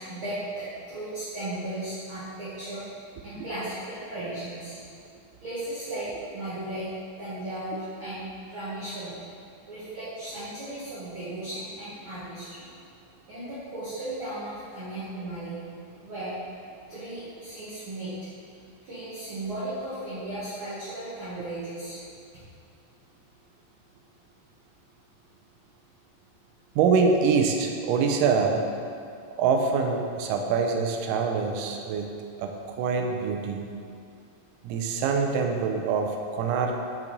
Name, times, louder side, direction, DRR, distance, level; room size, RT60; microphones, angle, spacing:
voice 1, 0.0-4.8 5.4-9.2 9.7-12.7 13.3-15.6 16.0-16.4 16.9-18.1 18.8-22.0, right 1 dB, 50° right, -12 dB, 1.8 m, -36 dB
voice 2, 26.8-28.6 29.4-32.1 32.4-33.6 34.6-36.7, right 5 dB, 85° right, 3 dB, 2.1 m, -25 dB
5.9 x 5.9 x 3.9 m, 2.4 s
omnidirectional pair, 3.7 m